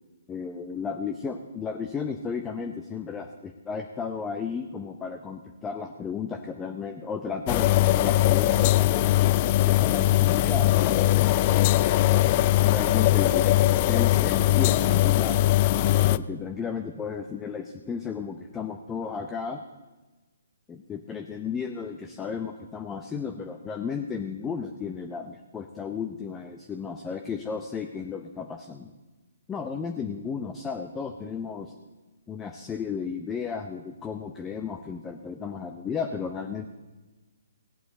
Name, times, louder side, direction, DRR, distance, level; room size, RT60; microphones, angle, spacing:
voice 1, 0.3-9.1 9.6-11.3 12.6-15.5 16.1-19.6 20.7-28.9 29.5-31.7 32.3-36.6, left 6 dB, 15° left, 5 dB, 0.7 m, -34 dB
sound 1, 7.5-16.2, left 15 dB, 35° left, 0.3 m, -21 dB
18.0 x 8.2 x 4.2 m, 1.2 s
figure-of-eight pair, 135°, 0 cm